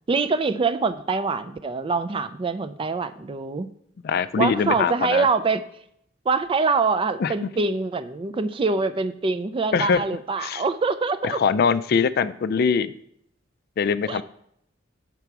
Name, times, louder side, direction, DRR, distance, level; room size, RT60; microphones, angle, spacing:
voice 1, 0.1-3.7 4.4-5.6 6.3-11.4 14.1-14.2, right 4 dB, 25° right, 12 dB, 0.4 m, -24 dB
voice 2, 4.0-5.3 7.2-7.3 9.7-10.0 10.4-10.6 11.2-12.9 13.8-14.2, left 6 dB, 55° left, 13 dB, 0.3 m, -22 dB
6.7 x 6.0 x 4.6 m, 0.72 s
head